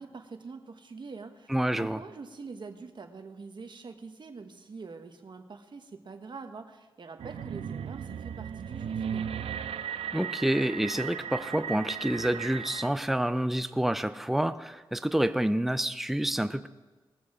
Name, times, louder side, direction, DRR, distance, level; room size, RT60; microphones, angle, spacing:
voice 1, 0.0-9.4, right 4 dB, 55° right, 6 dB, 1.3 m, -45 dB
voice 2, 1.5-2.0 10.1-16.7, right 1 dB, 5° right, 12 dB, 0.5 m, -28 dB
sound 1, 7.2-12.9, right 8 dB, 85° right, 0.5 m, -36 dB
20.0 x 7.0 x 4.9 m, 1.2 s
cardioid pair, 70°, 10 cm